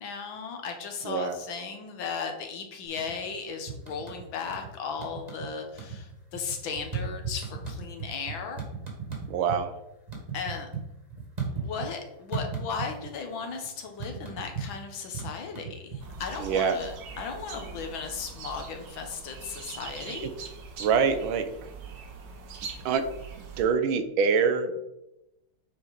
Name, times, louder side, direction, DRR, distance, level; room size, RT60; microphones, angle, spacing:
voice 1, 0.0-8.6 10.3-10.7 11.5-20.3, left 5 dB, 70° left, 4 dB, 1.7 m, -36 dB
voice 2, 1.0-1.3 9.3-9.7 16.4-16.8 20.8-21.4 22.8-23.0 23.6-24.8, right 6 dB, 75° right, 8 dB, 1.4 m, -24 dB
sound 1, 2.8-3.3 3.7-4.7 5.0-5.5 5.7-9.6 9.9-12.0 12.3-13.2 13.4-16.3, right 5 dB, 20° right, 1.5 m, -36 dB
sound 2, 16.0-23.6, right 5 dB, 55° right, 1.2 m, -42 dB
7.6 x 4.4 x 3.9 m, 0.90 s
omnidirectional pair, 2.3 m